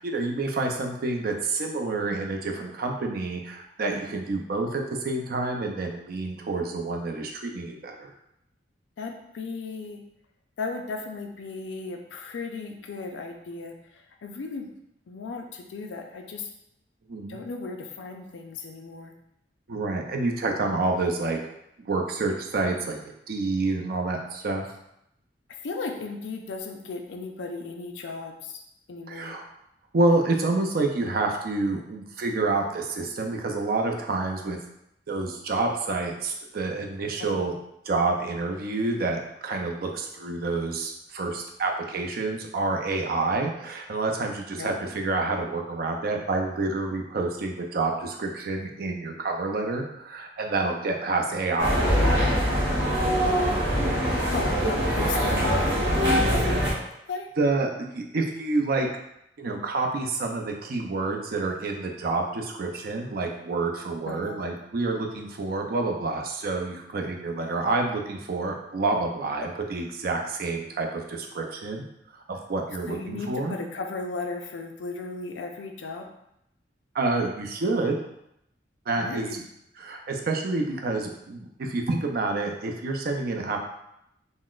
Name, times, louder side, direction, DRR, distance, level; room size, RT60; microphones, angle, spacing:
voice 1, 0.0-8.1 17.1-17.4 19.7-21.4 21.9-24.7 29.1-29.4 29.9-34.6 35.1-37.5 37.9-52.6 56.4-56.6 57.4-58.9 59.4-71.9 72.1-73.6 76.9-78.0 78.9-79.4 79.8-83.6, right 3 dB, 55° right, 2 dB, 0.4 m, -28 dB
voice 2, 9.0-10.0 10.6-14.7 15.1-16.5 17.3-19.1 25.6-28.6 28.9-29.4 37.2-37.5 44.6-44.7 54.3-56.7 57.1-57.3 64.1-64.5 72.9-76.1 78.9-79.4, left 3 dB, 85° left, 3 dB, 0.4 m, -35 dB
sound 1, 51.6-56.7, equal, 75° right, 1.1 m, -23 dB
3.8 x 2.0 x 2.3 m, 0.79 s
head